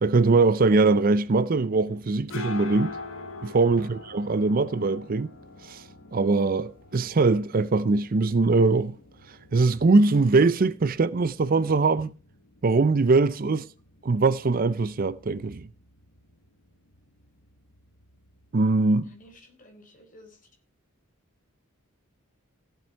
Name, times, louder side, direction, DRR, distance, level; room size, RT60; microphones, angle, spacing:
voice 1, 0.0-3.0 3.4-5.3 5.6-5.8 6.1-9.0 9.3-12.1 12.6-13.6 14.0-15.7 18.5-19.1, right 3 dB, 40° right, 0.5 m, -22 dB
sound 1, 1.9-19.3, left 3 dB, 60° left, 1.3 m, -46 dB
voice 2, 19.0-20.5, equal, 40° left, 4.1 m, -52 dB
16.0 x 7.6 x 4.5 m
head